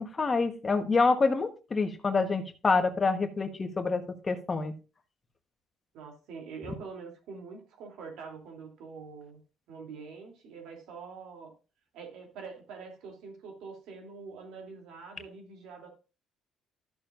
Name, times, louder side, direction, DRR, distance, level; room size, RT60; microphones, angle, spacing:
voice 1, 0.0-4.7, left 4 dB, 25° left, 7 dB, 1.2 m, -27 dB
voice 2, 5.9-9.4 9.7-11.5 11.9-15.9, right 5 dB, 80° right, 2 dB, 2.9 m, -45 dB
13.0 x 6.9 x 2.5 m, 0.32 s
cardioid pair, 125°, 0 cm